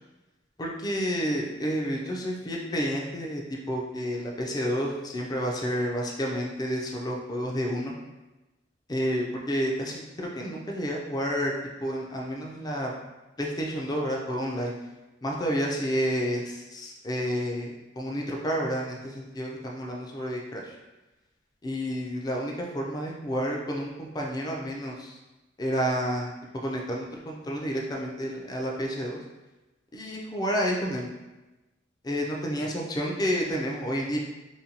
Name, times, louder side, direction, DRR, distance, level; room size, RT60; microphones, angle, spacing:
voice 1, 0.6-7.9 8.9-11.5 11.8-12.9 13.4-14.7 15.2-20.7 21.6-25.1 25.6-29.2 29.9-31.1 32.0-34.2, equal, 20° left, -1 dB, 0.4 m, -30 dB
2.6 x 2.2 x 2.8 m, 1.1 s
head